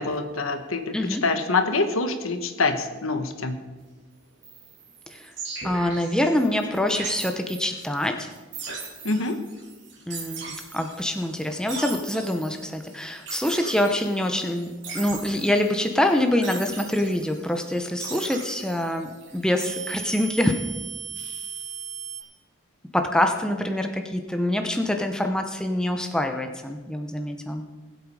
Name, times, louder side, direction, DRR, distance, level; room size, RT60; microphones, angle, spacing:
voice 1, 0.0-1.0 1.2-3.6 9.0-9.4, left 3 dB, 85° left, 7 dB, 1.3 m, -25 dB
sound 1, 4.4-22.2, right 5 dB, 60° right, 3.0 m, -38 dB
voice 2, 5.6-8.3 10.1-20.5 22.9-27.6, left 1 dB, 5° left, 4 dB, 0.9 m, -25 dB
19.5 x 8.3 x 4.9 m, 1.2 s
head